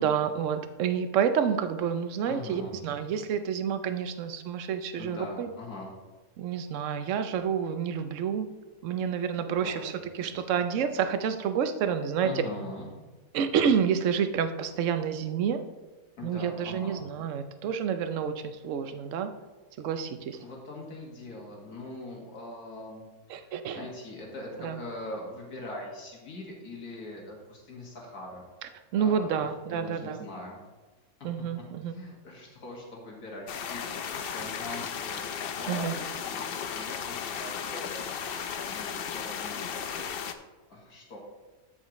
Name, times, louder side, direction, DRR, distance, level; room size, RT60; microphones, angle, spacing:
voice 1, 0.0-5.5 6.4-8.5 8.8-12.3 13.3-15.6 16.2-19.3 19.8-20.4 23.3-23.8 24.6-24.8 28.9-30.3 31.2-31.9 35.7-35.9, right 7 dB, 65° right, 9 dB, 0.9 m, -29 dB
voice 2, 2.3-2.8 5.0-5.9 9.6-10.6 12.2-12.9 16.2-17.0 20.4-30.6 31.2-31.3 31.6-35.2 35.6-38.1 38.7-40.1 40.7-41.2, left 2 dB, 80° left, -2 dB, 2.4 m, -42 dB
sound 1, 33.5-40.3, left 7 dB, 60° left, 0.6 m, -35 dB
13.0 x 5.6 x 3.1 m, 1.3 s
omnidirectional pair, 1.6 m